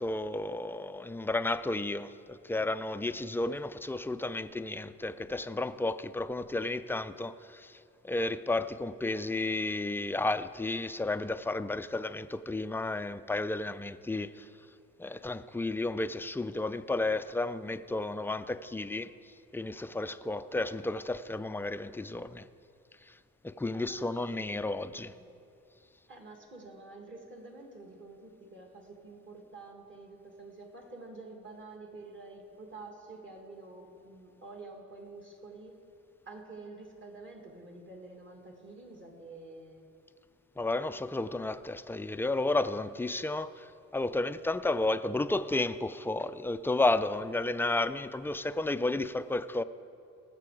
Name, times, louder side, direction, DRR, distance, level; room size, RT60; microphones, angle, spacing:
voice 1, 0.0-7.8 8.0-14.5 15.0-19.1 19.5-22.5 23.1-23.2 23.4-25.1 40.6-49.6, left 2 dB, 10° left, 0.3 m, -32 dB
voice 2, 23.7-25.3 26.1-35.8 36.3-39.9, right 3 dB, 40° right, 2.3 m, -48 dB
19.0 x 6.9 x 4.9 m
cardioid pair, 90°, 30 cm